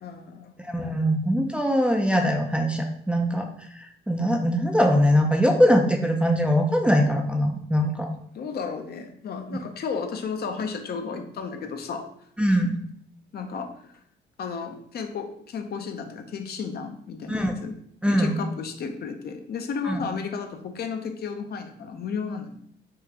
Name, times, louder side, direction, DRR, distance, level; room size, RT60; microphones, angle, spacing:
voice 1, 0.0-0.5 8.3-12.1 12.5-12.6 13.3-13.9 14.4-17.8 18.1-22.6, left 5 dB, 55° left, 5 dB, 0.5 m, -33 dB
voice 2, 0.7-3.5 4.1-8.1 12.4-12.8 17.3-17.5 18.0-18.4 19.9-20.0, equal, 5° right, 3 dB, 0.3 m, -22 dB
3.6 x 2.4 x 2.8 m, 0.68 s
cardioid pair, 90°, 20 cm